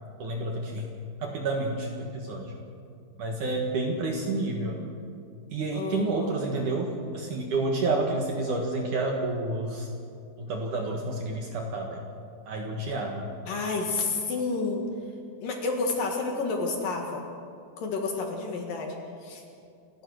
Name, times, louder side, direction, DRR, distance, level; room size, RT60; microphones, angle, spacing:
voice 1, 0.2-0.9 1.2-2.5 3.2-4.8 5.5-9.9 10.4-12.0 12.5-13.3, right 2 dB, 55° right, 1 dB, 2.5 m, -29 dB
voice 2, 5.7-6.4 13.5-14.8 15.4-17.2 17.8-18.9 19.2-19.4, left 3 dB, 60° left, 2 dB, 3.0 m, -30 dB
29.0 x 14.5 x 6.3 m, 2.4 s
omnidirectional pair, 5.1 m